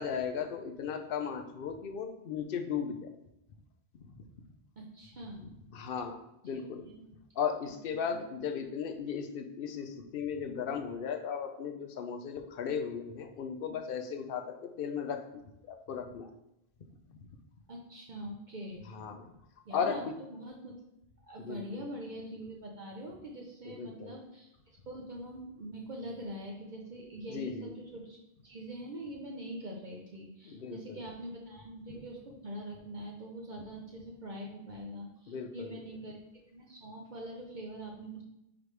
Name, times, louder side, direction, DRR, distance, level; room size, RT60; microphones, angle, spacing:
voice 1, 0.0-3.1 4.2-4.3 5.7-6.8 7.4-16.3 17.1-17.2 18.9-19.3 19.7-20.2 21.4-21.9 23.7-24.2 27.3-27.7 30.4-31.0 35.3-35.8, left 7 dB, 65° left, 7 dB, 0.8 m, -36 dB
voice 2, 4.8-5.5 6.5-7.0 7.9-8.2 17.7-18.8 19.7-20.0 20.3-20.7 21.3-36.2 36.5-38.2, right 1 dB, 50° right, -1 dB, 0.9 m, -44 dB
8.9 x 3.3 x 3.3 m, 0.86 s
omnidirectional pair, 1.1 m